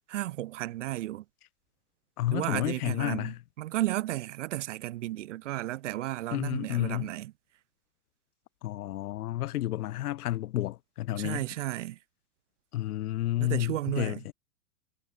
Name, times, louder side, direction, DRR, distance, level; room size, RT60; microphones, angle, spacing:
voice 1, 0.1-1.2 2.3-7.3 11.1-12.0 13.4-14.2, right 15 dB, 50° right, 0.6 m, -33 dB
voice 2, 2.2-3.4 6.3-7.1 8.6-11.5 12.7-14.3, left 14 dB, 70° left, 0.8 m, -31 dB
hypercardioid pair, 155°, 46 cm